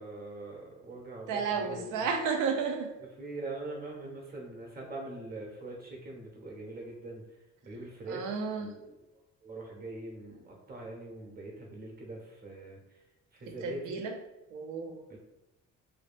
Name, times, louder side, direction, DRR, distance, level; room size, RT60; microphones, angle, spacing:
voice 1, 0.0-2.1 3.2-7.2 7.6-9.0 9.4-13.0 13.3-14.0 15.1-15.2, right 2 dB, 30° right, -1 dB, 0.7 m, -43 dB
voice 2, 1.3-3.0 8.1-8.7 13.5-14.1 14.5-15.0, right 5 dB, 90° right, 4 dB, 0.5 m, -32 dB
2.6 x 2.2 x 2.4 m, 0.94 s
cardioid pair, 90°, 30 cm